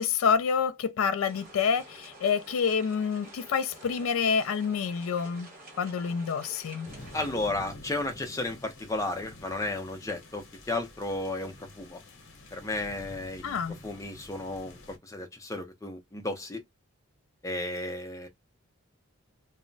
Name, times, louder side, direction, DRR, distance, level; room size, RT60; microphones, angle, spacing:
voice 1, 0.0-5.5 5.8-6.9 13.4-13.8, left 6 dB, 75° left, 0.3 m, -27 dB
sound 1, 1.2-7.3, right 1 dB, 40° right, 1.2 m, -50 dB
sound 2, 6.9-15.0, left 2 dB, 55° left, 0.8 m, -48 dB
voice 2, 7.1-12.0 12.5-16.6 17.4-18.3, left 2 dB, 15° left, 0.4 m, -34 dB
2.2 x 2.0 x 3.8 m
head